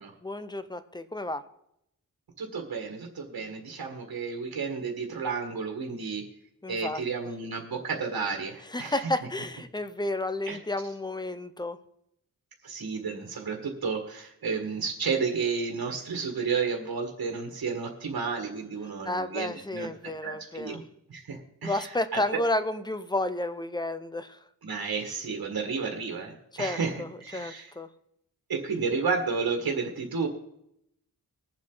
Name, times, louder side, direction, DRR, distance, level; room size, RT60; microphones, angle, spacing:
voice 1, 0.2-1.4 6.6-7.0 8.7-11.8 19.0-20.8 21.6-24.4 26.5-27.9, left 1 dB, 10° left, 11 dB, 0.7 m, -31 dB
voice 2, 2.4-6.2 6.7-9.0 10.5-10.6 12.6-20.8 21.1-22.4 24.6-27.7 28.5-30.3, right 5 dB, 80° right, 2 dB, 1.7 m, -32 dB
20.5 x 7.4 x 3.9 m, 0.77 s
wide cardioid pair, 115°, 36 cm